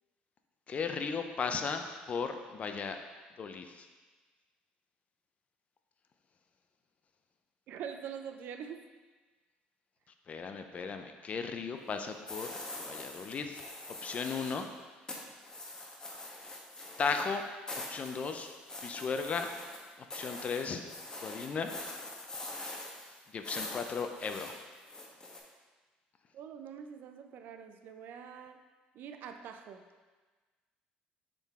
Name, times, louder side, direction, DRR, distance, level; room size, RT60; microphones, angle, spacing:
voice 1, 0.7-3.0 3.4-3.9 10.3-12.6 12.9-13.6 14.0-14.7 17.0-17.4 17.9-18.5 18.8-19.5 20.0-20.8 21.2-21.7 23.3-24.6, left 5 dB, 40° left, 6 dB, 0.6 m, -36 dB
voice 2, 7.7-8.8 26.3-28.6 28.9-29.8, right 7 dB, 65° right, 7 dB, 0.5 m, -44 dB
sound 1, 12.3-14.7 15.1-25.4, left 2 dB, 20° left, 1.2 m, -44 dB
7.2 x 3.9 x 3.6 m, 1.3 s
supercardioid pair, 90°, 4 cm